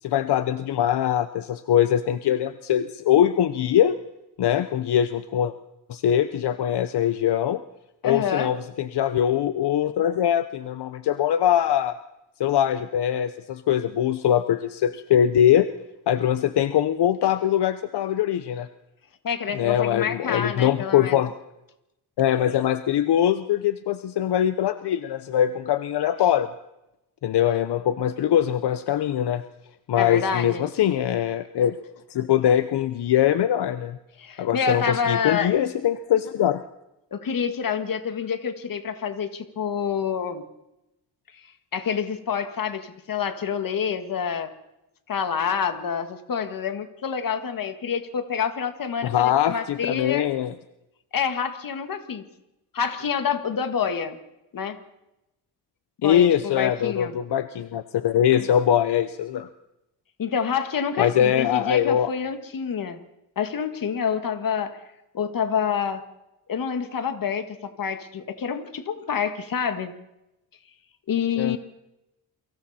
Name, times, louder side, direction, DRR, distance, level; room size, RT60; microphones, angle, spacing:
voice 1, 0.0-4.0 4.4-5.5 5.9-7.6 8.0-12.0 12.4-15.7 16.1-18.7 19.5-21.3 22.2-26.5 27.2-29.4 29.9-31.8 32.1-34.0 34.4-36.6 49.0-50.5 56.0-59.5 61.0-62.1 71.4-71.6, left 10 dB, 80° left, 11 dB, 0.9 m, -22 dB
voice 2, 8.0-8.5 19.2-21.2 30.0-30.6 34.2-35.5 37.1-40.4 41.7-44.5 45.1-50.3 51.1-52.2 52.7-54.2 54.5-54.8 56.0-57.2 60.2-63.0 63.4-64.8 65.1-66.0 66.5-69.9 71.1-71.6, left 7 dB, 55° left, 8 dB, 1.9 m, -27 dB
29.0 x 24.0 x 4.3 m, 0.91 s
wide cardioid pair, 175°, 39 cm